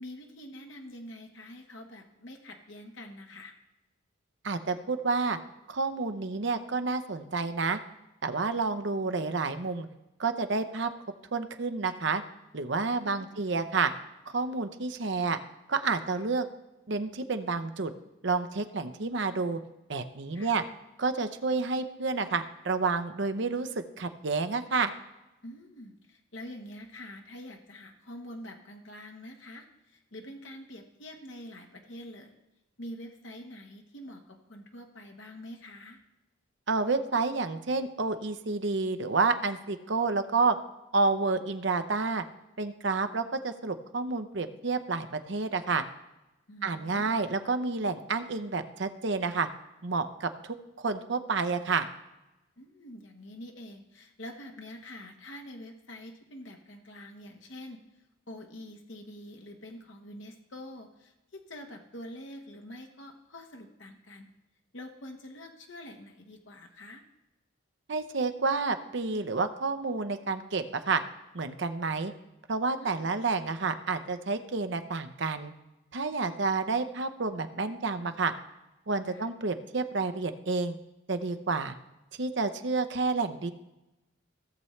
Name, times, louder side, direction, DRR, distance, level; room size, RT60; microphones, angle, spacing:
voice 1, 0.0-3.5 12.8-13.3 20.3-20.5 25.4-32.3 32.8-36.0 46.5-47.2 52.6-64.3 64.7-67.0 72.8-73.1 79.1-79.3, left 1 dB, 65° left, 3 dB, 1.2 m, -46 dB
voice 2, 4.4-5.4 5.7-7.8 8.2-9.9 10.2-10.9 11.3-12.2 12.5-13.9 14.3-15.4 15.7-16.5 16.9-17.9 18.2-19.6 19.9-20.6 21.0-23.7 24.0-24.9 36.7-40.6 40.9-42.2 42.6-45.8 46.6-49.5 49.8-51.9 67.9-71.0 71.3-72.1 72.5-75.5 75.9-78.3 78.9-80.7 81.1-81.7 82.2-83.5, right 4 dB, 60° right, 9 dB, 0.7 m, -29 dB
17.0 x 6.9 x 3.2 m, 0.98 s
head